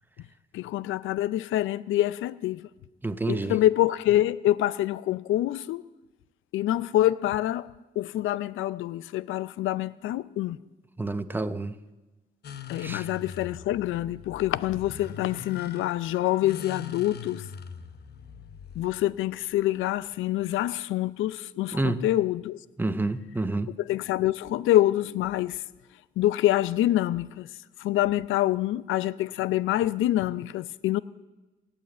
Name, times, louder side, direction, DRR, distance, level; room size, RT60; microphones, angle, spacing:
voice 1, 0.5-2.7 3.3-5.8 6.5-7.7 8.0-10.6 12.7-17.5 18.8-22.6 23.8-25.6 26.2-27.5 27.8-31.0, left 14 dB, 85° left, 0.5 m, -26 dB
voice 2, 3.0-3.6 11.0-11.8 12.8-13.1 21.7-22.1 22.8-23.7, right 2 dB, 10° right, 0.8 m, -29 dB
sound 1, 12.4-20.8, left 6 dB, 55° left, 1.0 m, -43 dB
17.5 x 8.9 x 7.9 m
cardioid pair, 90°, 20 cm